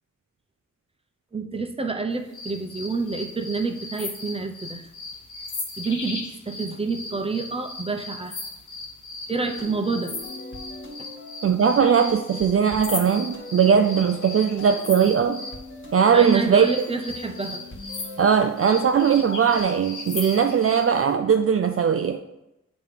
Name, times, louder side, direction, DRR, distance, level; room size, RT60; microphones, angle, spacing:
voice 1, 1.3-4.8 5.8-8.4 9.3-10.1 16.1-17.6, right 3 dB, 20° right, 6 dB, 0.7 m, -28 dB
sound 1, 2.3-15.6 16.1-20.9, left 3 dB, 90° left, 1.1 m, -37 dB
sound 2, 9.5-19.7, left 2 dB, 45° left, 1.6 m, -41 dB
voice 2, 11.4-15.4 15.9-16.8 18.2-22.2, right 7 dB, 50° right, 6 dB, 0.4 m, -19 dB
8.3 x 3.0 x 5.1 m, 0.92 s
wide cardioid pair, 55°, 30 cm